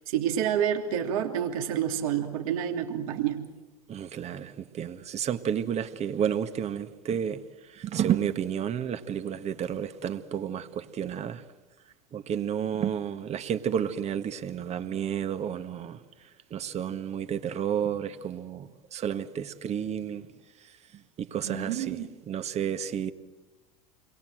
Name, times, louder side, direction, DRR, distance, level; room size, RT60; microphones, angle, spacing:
voice 1, 0.1-3.4 21.4-22.1, right 9 dB, 70° right, 3.1 m, -28 dB
voice 2, 3.9-7.4 7.7-11.4 12.1-16.0 16.5-20.3 21.2-23.1, right 9 dB, 35° right, 1.6 m, -31 dB
29.0 x 22.5 x 7.8 m
hypercardioid pair, 90°, 19 cm